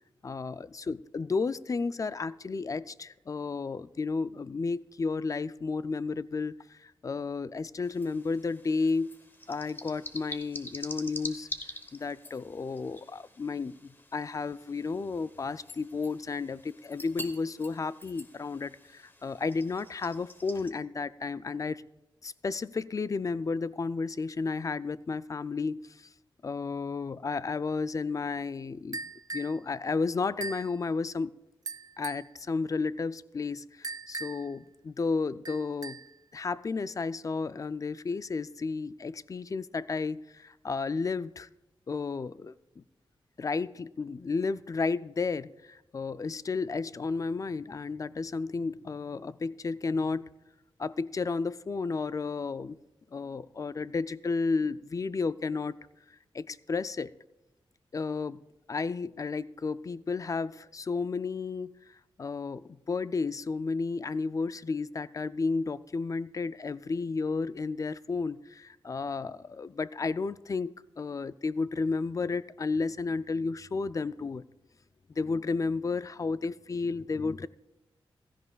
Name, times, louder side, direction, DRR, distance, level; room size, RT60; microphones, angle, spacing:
voice 1, 0.2-9.1 9.5-11.5 11.9-21.8 22.2-26.1 26.4-29.0 29.3-31.3 32.0-36.0 36.3-41.5 41.9-42.8 43.4-50.3 50.8-52.8 53.1-55.8 56.3-57.1 57.9-58.4 58.7-74.4 75.1-77.5, left 4 dB, 35° left, 16 dB, 0.3 m, -32 dB
sound 1, 7.8-20.7, left 1 dB, 20° left, 1.0 m, -46 dB
sound 2, 28.9-29.6 30.4-30.7 31.7-32.3 33.8-34.6 35.5-36.2, right 4 dB, 40° right, 0.3 m, -39 dB
16.0 x 13.5 x 2.3 m, 0.96 s
cardioid pair, 80°, 9 cm